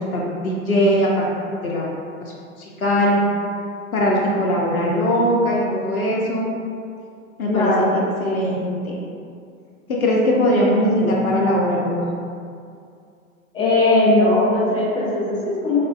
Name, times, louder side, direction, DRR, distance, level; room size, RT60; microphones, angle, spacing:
voice 1, 0.1-1.3 1.6-1.9 2.8-3.2 3.9-6.5 7.4-7.7 8.2-8.9 9.9-11.9, equal, 85° left, -3 dB, 0.5 m, -20 dB
voice 2, 7.5-7.9 11.0-11.1 13.5-15.8, left 2 dB, 10° left, -9 dB, 0.5 m, -18 dB
3.5 x 2.2 x 2.3 m, 2.4 s
figure-of-eight pair, 100°, 42 cm